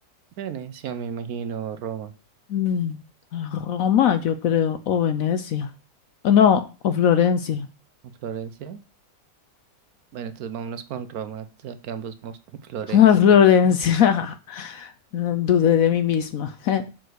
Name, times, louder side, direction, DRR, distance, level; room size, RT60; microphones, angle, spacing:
voice 1, 0.4-2.1 8.2-8.8 10.1-13.3, right 7 dB, 65° right, 11 dB, 1.1 m, -34 dB
voice 2, 2.5-3.0 3.3-5.7 6.2-7.7 12.9-16.8, left 8 dB, 65° left, 9 dB, 0.9 m, -20 dB
6.8 x 4.5 x 6.3 m, 0.33 s
omnidirectional pair, 1.8 m